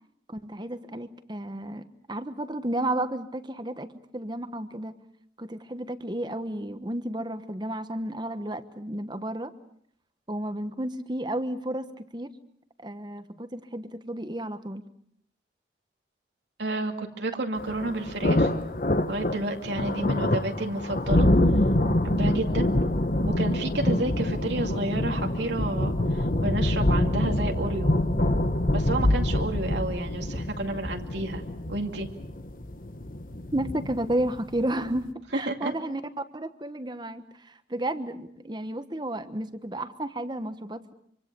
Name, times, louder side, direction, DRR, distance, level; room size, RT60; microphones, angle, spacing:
voice 1, 0.3-3.9 4.1-4.9 5.4-9.5 10.3-12.3 12.8-14.8 33.5-35.1 35.3-36.0 36.3-40.9, right 1 dB, 25° right, 10 dB, 1.2 m, -32 dB
voice 2, 16.6-18.5 19.1-21.3 22.0-22.7 23.2-27.9 28.7-31.4 31.7-32.1 35.3-35.7, right 2 dB, 75° right, 3 dB, 2.4 m, -31 dB
sound 1, 17.6-35.1, left 1 dB, 50° left, 1.4 m, -26 dB
26.0 x 25.0 x 6.9 m, 0.67 s
head